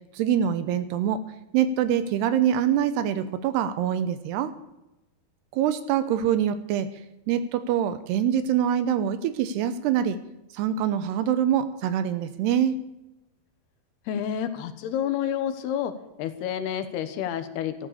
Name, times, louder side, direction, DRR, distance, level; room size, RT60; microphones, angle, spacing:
voice 1, 0.1-1.2 1.5-4.5 5.5-6.9 7.3-10.2 10.5-12.8, right 9 dB, 80° right, 12 dB, 2.8 m, -24 dB
voice 2, 14.1-15.9 16.2-17.7, left 9 dB, 75° left, 10 dB, 3.0 m, -29 dB
14.0 x 12.5 x 6.8 m, 0.94 s
omnidirectional pair, 4.9 m